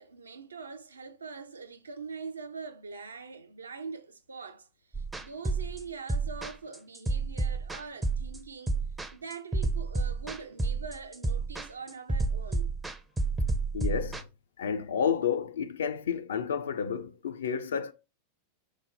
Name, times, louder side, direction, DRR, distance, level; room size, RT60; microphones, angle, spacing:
voice 1, 0.0-8.8 9.1-12.8, right 5 dB, 75° right, 0.4 m, -43 dB
sound 1, 4.9-14.2, right 3 dB, 10° right, 0.4 m, -30 dB
voice 2, 13.7-14.3 14.6-17.9, left 7 dB, 65° left, 0.4 m, -30 dB
3.2 x 2.1 x 3.7 m
figure-of-eight pair, 90°, 0 cm